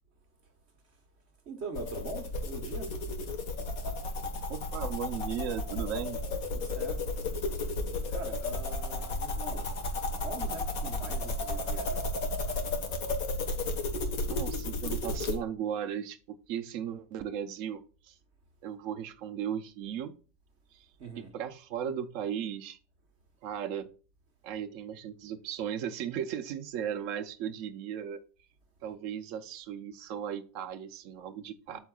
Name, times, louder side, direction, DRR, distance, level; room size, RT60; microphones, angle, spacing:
voice 1, 1.5-2.9 6.5-7.0 8.1-9.7 10.2-12.0 21.0-21.4 31.7-31.8, right 3 dB, 55° right, 1.4 m, -43 dB
sound 1, 1.7-15.4, left 2 dB, 90° left, 1.8 m, -33 dB
voice 2, 4.5-6.2 9.4-9.8 14.3-18.2 18.6-20.1 20.7-20.9 21.2-22.8 23.4-23.9 24.4-28.2 28.8-31.8, right 9 dB, 70° right, 1.0 m, -36 dB
12.5 x 4.6 x 2.3 m
omnidirectional pair, 1.5 m